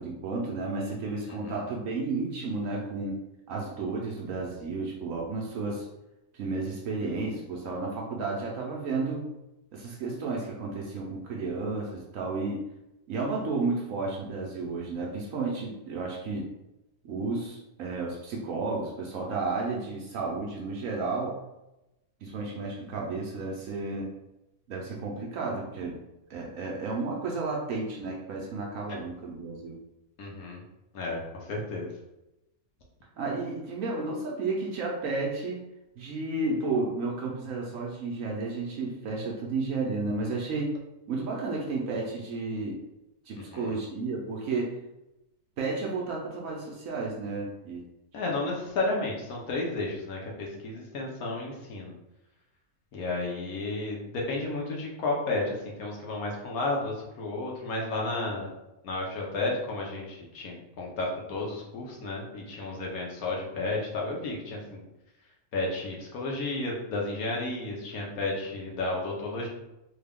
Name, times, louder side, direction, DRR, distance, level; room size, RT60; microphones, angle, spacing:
voice 1, 0.0-3.2 3.5-5.9 6.3-9.3 9.7-12.6 13.1-16.5 17.0-21.4 22.2-24.1 24.7-26.0 26.3-29.8 33.2-35.6 36.0-40.8 41.1-42.8 43.3-44.8 45.6-47.9, right 3 dB, 70° right, -2 dB, 1.0 m, -32 dB
voice 2, 1.3-1.6 30.2-30.6 30.9-31.9 43.5-43.8 48.1-51.9 52.9-58.5 58.8-64.8 65.5-69.5, left 2 dB, 85° left, -2 dB, 1.3 m, -32 dB
3.6 x 2.3 x 3.5 m, 0.93 s
omnidirectional pair, 1.5 m